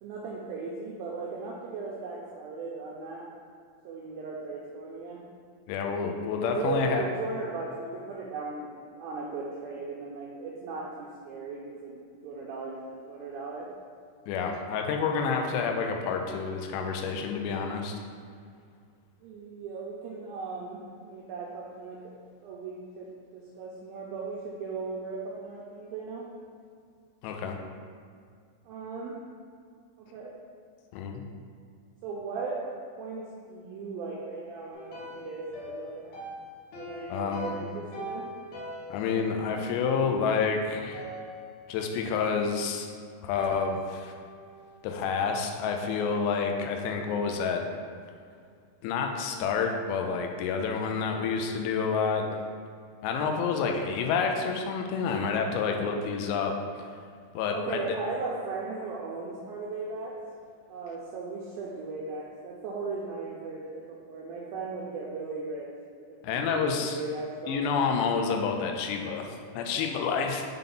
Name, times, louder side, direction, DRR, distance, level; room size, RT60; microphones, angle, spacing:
voice 1, 0.0-3.3 3.8-5.2 6.4-13.7 19.2-22.1 22.4-26.3 28.6-29.2 30.0-30.3 32.0-32.7 33.0-36.3 36.7-38.2 57.5-60.2 60.7-65.7 66.1-67.6, right 3 dB, 90° right, -4 dB, 2.1 m, -37 dB
voice 2, 5.7-7.0 14.3-18.0 27.2-27.6 30.9-31.2 37.1-37.6 38.9-41.0 41.7-42.9 43.2-44.1 44.8-47.6 48.8-52.4 53.0-56.9 57.3-57.8 66.2-67.0 67.5-70.4, left 5 dB, 90° left, 3 dB, 2.8 m, -29 dB
sound 1, 34.7-40.5 40.9-42.1 43.3-45.5, left 1 dB, 70° left, 2.6 m, -42 dB
6.9 x 3.6 x 3.8 m, 2.1 s
omnidirectional pair, 4.9 m